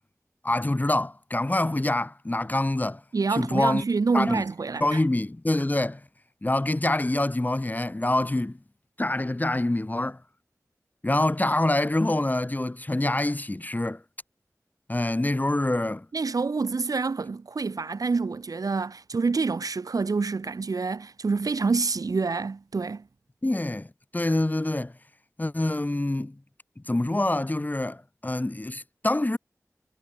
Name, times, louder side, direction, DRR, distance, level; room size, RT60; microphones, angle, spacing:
voice 1, 0.4-3.0 3.3-3.8 4.1-4.4 4.8-6.0 6.4-8.6 9.0-10.2 11.0-14.0 14.9-16.1 23.4-23.9 24.1-24.9 25.4-26.4 26.9-29.4, left 1 dB, 30° left, 1.8 m, -26 dB
voice 2, 3.1-5.0 16.1-23.0, right 4 dB, 85° right, 1.1 m, -27 dB
wide cardioid pair, 65°, 6 cm